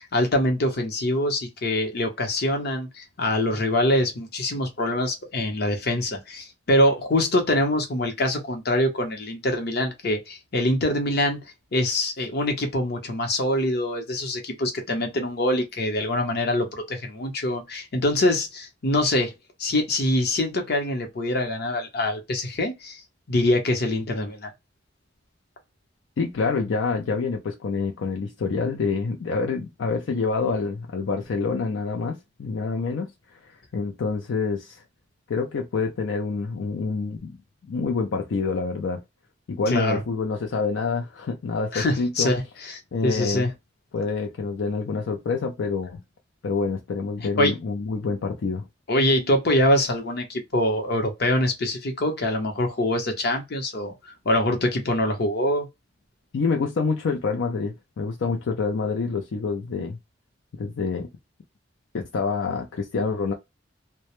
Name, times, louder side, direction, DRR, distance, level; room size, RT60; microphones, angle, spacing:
voice 1, 0.0-11.4 11.7-19.3 19.6-23.0 23.3-24.5 39.7-40.0 41.7-43.5 47.4-47.5 48.9-53.9 54.2-55.7, left 1 dB, 60° left, 0.8 m, -24 dB
voice 2, 26.2-33.1 33.4-34.8 35.3-37.4 37.7-39.0 39.5-42.3 42.9-43.5 43.9-46.0 46.4-48.7 56.3-60.0 60.5-61.1 61.9-63.3, left 4 dB, 85° left, 0.4 m, -27 dB
2.1 x 2.1 x 2.9 m
head